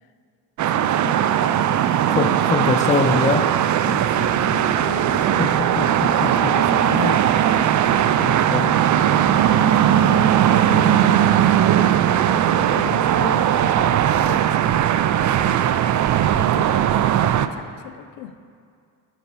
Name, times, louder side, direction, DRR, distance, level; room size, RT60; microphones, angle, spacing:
sound 1, 0.6-17.5, right 10 dB, 40° right, 0.4 m, -18 dB
voice 1, 0.7-2.2 3.8-5.5 6.3-7.4 10.6-14.8 16.3-18.4, left 9 dB, 75° left, 10 dB, 0.6 m, -36 dB
voice 2, 2.1-3.5 5.4-6.6 6.9-7.1 8.2-8.7, left 4 dB, 15° left, 8 dB, 0.6 m, -24 dB
sound 2, 3.9-13.3, left 3 dB, 45° left, 1.1 m, -39 dB
12.5 x 4.9 x 4.6 m, 2.3 s
hypercardioid pair, 55°, 48 cm